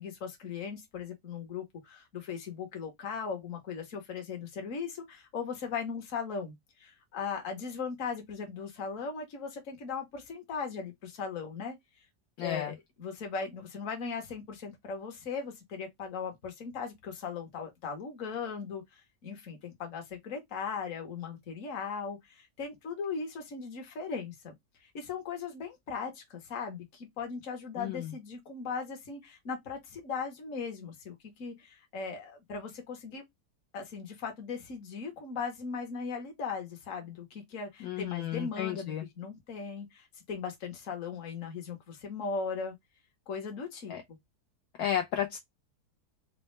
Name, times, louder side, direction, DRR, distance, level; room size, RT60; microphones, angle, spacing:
voice 1, 0.0-6.5 6.8-11.8 12.4-24.5 24.8-33.2 33.7-42.8 43.3-44.2, left 5 dB, 55° left, 1.4 m, -38 dB
voice 2, 12.4-12.7 27.8-28.1 37.8-39.0 43.9-44.0 44.8-45.4, left 10 dB, 75° left, 1.2 m, -33 dB
4.1 x 2.2 x 3.1 m
omnidirectional pair, 1.8 m